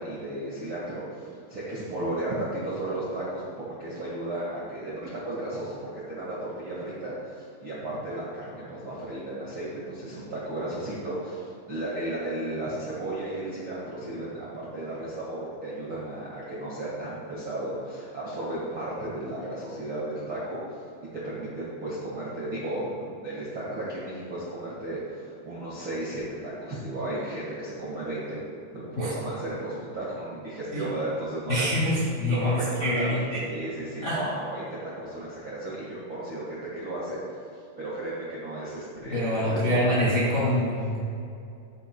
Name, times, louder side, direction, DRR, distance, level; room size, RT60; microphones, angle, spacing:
voice 1, 0.0-3.4 3.8-20.8 21.2-28.4 28.7-40.1 40.4-40.6, right 1 dB, 55° right, -8 dB, 1.4 m, -34 dB
voice 2, 31.5-33.4 34.0-34.2 39.1-41.0, equal, 40° left, -8 dB, 1.2 m, -25 dB
14.0 x 8.2 x 2.3 m, 2.6 s
omnidirectional pair, 4.9 m